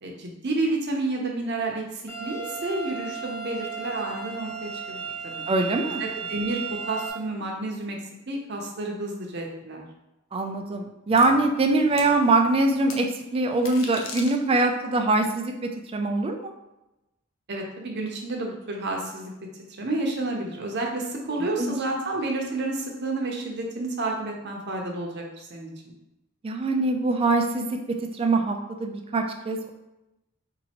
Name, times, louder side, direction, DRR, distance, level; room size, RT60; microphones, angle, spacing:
voice 1, 0.0-5.4 6.0-8.0 8.3-9.8 17.5-19.3 19.8-25.9, right 2 dB, 55° right, 0 dB, 0.7 m, -30 dB
sound 1, 2.1-7.1, right 6 dB, 10° left, 0.8 m, -35 dB
voice 2, 5.5-6.0 10.3-16.5 21.6-21.7 26.4-27.7 28.2-29.7, right 2 dB, 25° right, 4 dB, 0.3 m, -23 dB
sound 2, 11.2-11.3 12.0-12.1 12.9-13.0 13.5-14.7, left 4 dB, 65° left, 0.5 m, -38 dB
4.1 x 2.6 x 2.8 m, 0.96 s
head